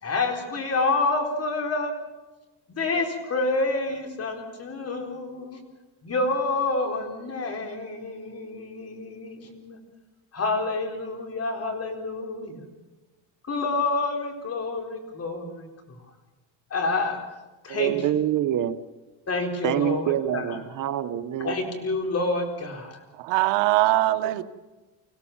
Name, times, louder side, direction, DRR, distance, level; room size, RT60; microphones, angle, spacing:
voice 1, 0.0-1.9 2.7-5.6 6.0-9.8 10.3-12.6 13.5-15.7 16.7-17.2 17.6-18.0 19.3-20.6 21.4-23.0, left 3 dB, 35° left, 4.3 m, -28 dB
voice 2, 17.7-18.8 19.6-21.6, right 11 dB, 50° right, 1.0 m, -26 dB
voice 3, 23.1-24.4, right 17 dB, 85° right, 1.2 m, -22 dB
25.5 x 16.5 x 7.3 m
cardioid pair, 120°, 41 cm